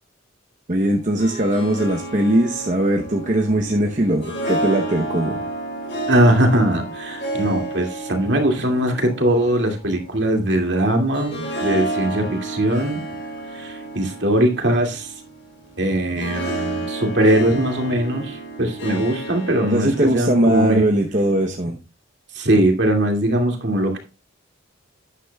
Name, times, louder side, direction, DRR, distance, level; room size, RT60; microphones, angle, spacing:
voice 1, 0.7-5.4 19.6-21.8, right 1 dB, 35° right, 2 dB, 0.9 m, -20 dB
Harp, 1.0-20.8, right 2 dB, 55° left, 5.7 m, -31 dB
voice 2, 6.1-13.0 13.5-15.1 15.8-20.8 22.3-24.0, right 1 dB, 55° right, 3 dB, 2.3 m, -20 dB
12.0 x 10.0 x 2.3 m, 0.30 s
head